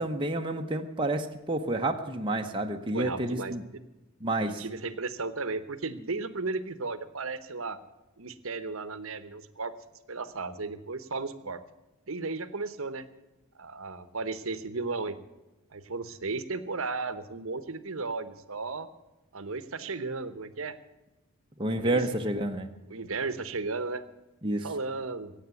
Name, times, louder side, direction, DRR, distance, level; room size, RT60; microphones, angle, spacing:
voice 1, 0.0-3.6 4.2-4.6 21.6-22.7 24.4-24.7, right 1 dB, 20° right, 3 dB, 0.9 m, -29 dB
voice 2, 2.9-3.5 4.4-7.8 8.2-9.7 10.1-11.6 12.1-13.1 13.5-15.2 15.7-18.9 19.3-20.8 21.8-22.0 22.9-24.0 24.6-25.3, right 3 dB, 65° right, 13 dB, 1.1 m, -35 dB
15.5 x 8.8 x 8.3 m, 1.0 s
head